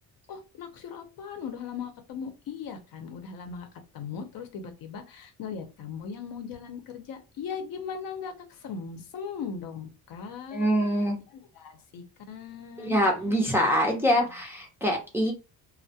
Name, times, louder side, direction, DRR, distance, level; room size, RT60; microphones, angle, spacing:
voice 1, 0.3-3.7 3.9-10.7 11.3-13.0, left 6 dB, 60° left, 6 dB, 0.7 m, -38 dB
voice 2, 10.5-11.2 12.8-15.3, equal, 5° right, -1 dB, 0.6 m, -24 dB
2.2 x 2.1 x 2.7 m, 0.30 s
cardioid pair, 135°, 38 cm